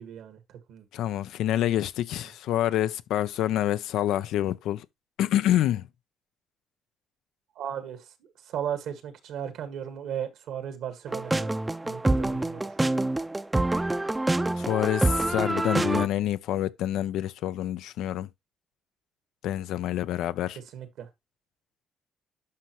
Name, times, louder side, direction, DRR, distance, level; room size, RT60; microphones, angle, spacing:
voice 1, 0.0-0.9 7.6-8.0 8.5-11.5 11.8-12.6 20.7-21.1, right 9 dB, 80° right, 1.7 m, -36 dB
voice 2, 0.9-4.9 5.2-5.9 14.6-18.3 19.4-20.6, left 12 dB, 85° left, 0.5 m, -27 dB
sound 1, 11.1-16.1, right 2 dB, 15° right, 0.5 m, -26 dB
11.5 x 5.3 x 3.0 m
cardioid pair, 90°, 0 cm